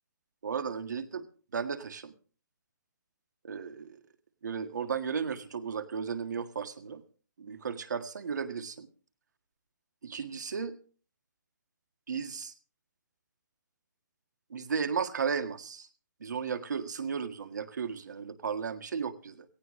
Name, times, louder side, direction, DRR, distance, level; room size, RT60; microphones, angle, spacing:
voice 1, 0.4-1.3 1.5-2.1 3.4-4.0 4.4-7.0 7.4-8.9 10.0-10.7 12.1-12.5 14.5-15.9 16.2-19.4, right 6 dB, 70° right, 9 dB, 1.7 m, -34 dB
17.5 x 16.0 x 3.2 m, 0.39 s
hypercardioid pair, 175°, 10 cm